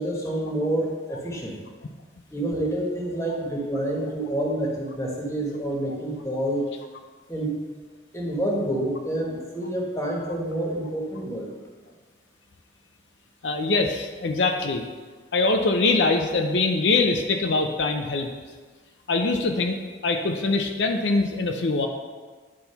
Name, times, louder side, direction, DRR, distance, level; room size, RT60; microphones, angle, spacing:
voice 1, 0.0-1.6 2.3-6.7 7.3-7.6 8.1-11.5, right 1 dB, 15° left, -2 dB, 1.3 m, -28 dB
voice 2, 13.4-14.8 15.3-18.3 19.1-19.8 20.0-21.9, left 3 dB, 70° left, 4 dB, 0.6 m, -23 dB
9.8 x 4.2 x 5.7 m, 1.5 s
head